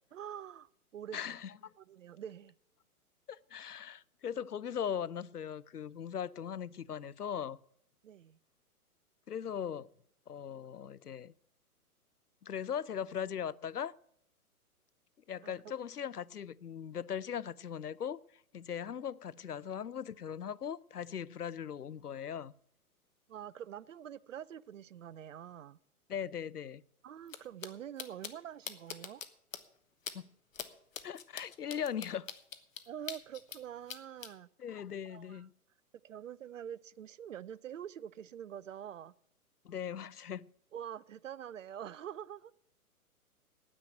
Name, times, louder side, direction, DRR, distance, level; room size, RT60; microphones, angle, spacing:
voice 1, 0.1-1.4 1.8-2.5 8.0-8.4 15.4-15.5 23.3-25.8 27.0-29.2 32.9-34.5 35.1-35.5 36.0-39.1 40.7-42.5, right 9 dB, 60° right, 0.5 m, -46 dB
voice 2, 1.1-1.7 3.3-7.6 9.3-9.9 10.3-11.3 12.4-14.0 15.3-18.2 18.5-22.5 26.1-26.8 30.1-30.3 31.0-32.3 34.6-35.5 39.6-40.4, left 8 dB, 90° left, 0.5 m, -39 dB
sound 1, 27.3-27.4 27.6-27.7 28.0-28.3 28.7-29.3 29.5-29.6 30.1-30.2 30.5-30.7 30.9-33.6 33.9-34.3, left 7 dB, 60° left, 1.2 m, -42 dB
9.6 x 9.2 x 8.9 m
figure-of-eight pair, 120°, 45 cm